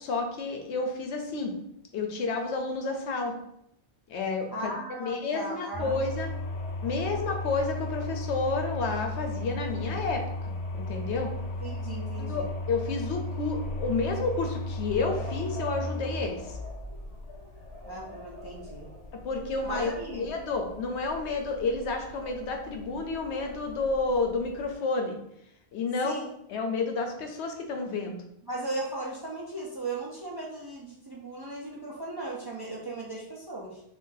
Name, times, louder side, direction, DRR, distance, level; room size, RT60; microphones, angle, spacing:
voice 1, 0.0-1.5 1.9-3.3 4.1-4.7 5.0-6.3 6.8-11.3 12.2-16.5 19.2-25.2 25.7-26.2 26.5-28.2, left 3 dB, 85° left, 4 dB, 0.9 m, -30 dB
voice 2, 4.5-6.0 11.6-12.5 17.8-18.9 19.6-20.3 26.0-26.3 28.4-33.8, right 2 dB, 35° right, -4 dB, 0.4 m, -37 dB
sound 1, 5.7-24.7, left 1 dB, 45° left, 0.5 m, -36 dB
2.6 x 2.5 x 3.8 m, 0.76 s
omnidirectional pair, 1.1 m